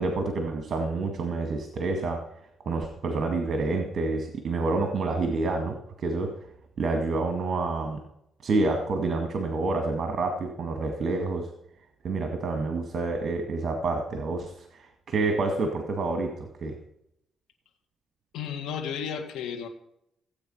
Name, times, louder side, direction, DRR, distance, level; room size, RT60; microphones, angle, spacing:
voice 1, 0.0-2.2 2.7-6.3 6.8-8.0 8.4-11.5 12.0-16.7, right 3 dB, 50° right, 4 dB, 2.1 m, -28 dB
voice 2, 18.3-19.7, left 7 dB, 80° left, 4 dB, 1.9 m, -33 dB
16.5 x 8.6 x 5.7 m, 0.77 s
cardioid pair, 90°, 0 cm